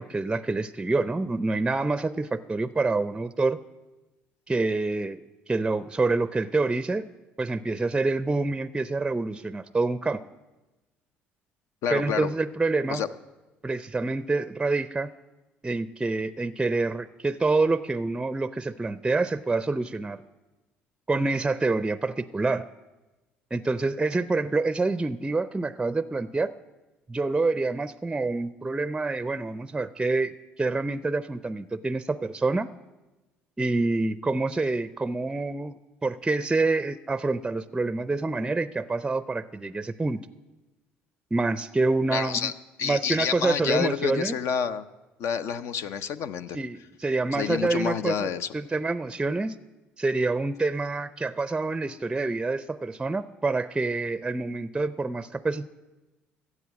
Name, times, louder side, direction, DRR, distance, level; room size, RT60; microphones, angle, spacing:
voice 1, 0.0-3.6 4.5-5.2 5.5-7.1 7.4-10.2 11.9-13.0 13.6-15.1 15.6-20.2 21.1-22.7 23.5-26.5 27.1-30.3 30.6-32.7 33.6-40.2 41.3-42.5 42.8-44.4 46.5-49.5 50.0-55.7, right 3 dB, 15° right, 14 dB, 0.4 m, -27 dB
voice 2, 11.8-12.3 12.9-13.1 42.1-42.5 42.8-44.8 45.2-46.6 47.3-48.5, left 7 dB, 65° left, 11 dB, 0.6 m, -28 dB
15.0 x 8.1 x 7.1 m, 1.1 s
hypercardioid pair, 65°, 5 cm